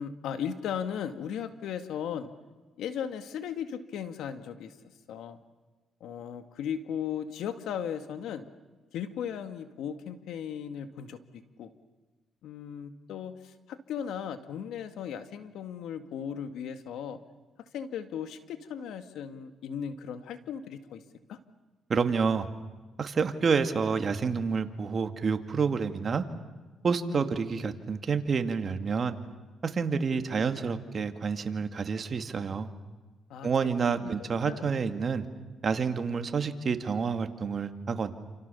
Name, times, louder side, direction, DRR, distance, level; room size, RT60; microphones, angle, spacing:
voice 1, 0.0-2.3 2.8-4.7 5.1-5.4 6.0-8.5 8.9-11.7 12.4-17.2 17.7-21.0 21.3-21.4 27.1-27.3 30.1-30.2 33.3-33.7 34.0-34.7, left 8 dB, 80° left, 9 dB, 2.1 m, -37 dB
voice 2, 21.9-22.5 23.0-26.2 26.8-29.2 29.6-32.7 33.4-35.3 35.6-38.1, right 5 dB, 45° right, 7 dB, 2.3 m, -28 dB
29.5 x 28.0 x 7.1 m, 1.3 s
cardioid pair, 90°, 0 cm